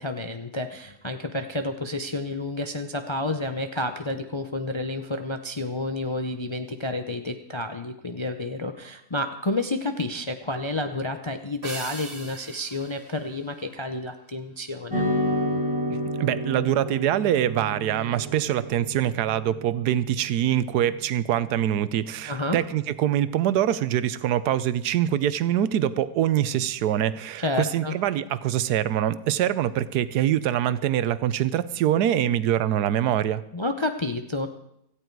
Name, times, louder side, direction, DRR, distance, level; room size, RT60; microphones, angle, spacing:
voice 1, 0.0-15.1 22.3-22.6 27.4-27.9 33.5-34.5, left 2 dB, 50° left, 6 dB, 0.3 m, -30 dB
sound 1, 11.6-14.3, right 2 dB, 35° right, 2.0 m, -41 dB
sound 2, 14.9-23.4, equal, 5° right, 4.3 m, -32 dB
voice 2, 16.2-33.4, right 11 dB, 75° right, 15 dB, 1.2 m, -24 dB
17.0 x 14.5 x 4.6 m, 0.77 s
omnidirectional pair, 1.7 m